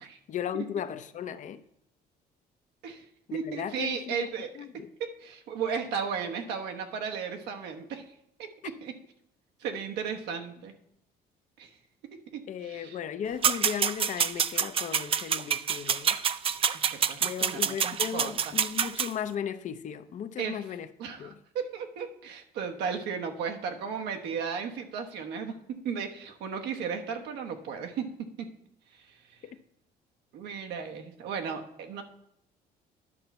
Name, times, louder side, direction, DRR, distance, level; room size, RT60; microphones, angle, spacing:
voice 1, 0.3-1.6 3.3-4.3 4.5-4.9 12.5-16.2 17.2-20.9 21.2-21.4 29.4-29.6, left 8 dB, 50° left, 12 dB, 0.6 m, -36 dB
voice 2, 3.3-4.5 5.0-8.0 8.4-8.5 8.8-8.9 9.6-10.7 11.6-11.7 12.3-13.0 16.7-18.5 20.4-20.6 21.0-28.1 28.4-28.5 29.1-29.2 30.3-32.0, right 6 dB, 85° right, 4 dB, 1.1 m, -35 dB
sound 1, 13.4-19.1, right 8 dB, 35° right, 0.3 m, -27 dB
11.0 x 5.7 x 4.2 m, 0.78 s
cardioid pair, 110°, 17 cm